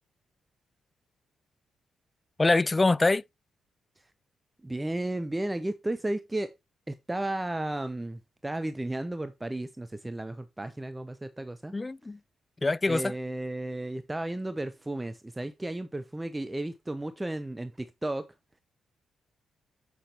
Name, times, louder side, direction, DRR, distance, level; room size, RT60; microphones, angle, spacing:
voice 1, 2.4-3.2 11.7-12.2 12.6-13.1, left 2 dB, 25° left, 0.3 m, -24 dB
voice 2, 4.6-6.5 6.9-11.7 12.9-18.3, right 1 dB, 15° right, 0.8 m, -33 dB
7.9 x 5.8 x 3.4 m
hypercardioid pair, 40°, 0 cm